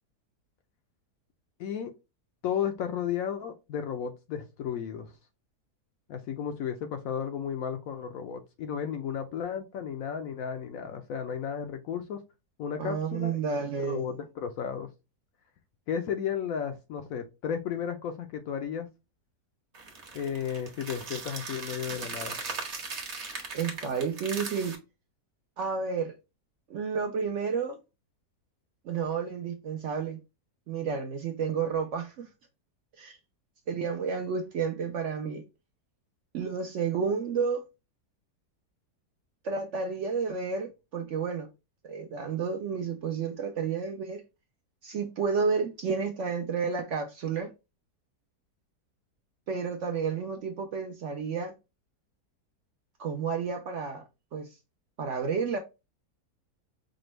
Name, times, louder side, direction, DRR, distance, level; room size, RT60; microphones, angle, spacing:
voice 1, 1.6-1.9 2.4-5.1 6.1-12.2 12.6-13.4 13.8-14.9 15.9-18.9 20.1-22.4, left 8 dB, 70° left, 0.9 m, -33 dB
voice 2, 12.8-14.0 23.5-24.8 25.6-26.1 26.7-27.8 28.8-30.2 30.7-32.3 33.0-33.2 33.7-35.4 36.3-37.6 39.4-41.5 41.8-44.2 44.8-47.5 49.5-51.5 53.0-54.0 54.3-54.5 55.0-55.6, right 5 dB, 65° right, 0.7 m, -31 dB
sound 1, 19.7-24.7, right 4 dB, 50° right, 1.1 m, -39 dB
5.0 x 2.2 x 3.1 m
omnidirectional pair, 1.7 m